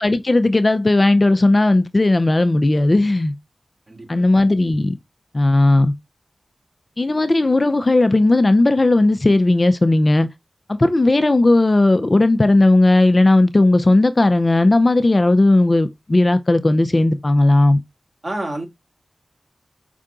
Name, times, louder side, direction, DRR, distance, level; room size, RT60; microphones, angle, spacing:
voice 1, 0.0-3.4 4.1-5.0 5.3-5.9 7.0-10.3 10.7-17.8, left 2 dB, 40° left, 0.5 m, -15 dB
voice 2, 3.9-4.2 18.2-18.7, right 1 dB, 40° right, 2.3 m, -28 dB
5.5 x 2.5 x 3.6 m
cardioid pair, 40°, 0 cm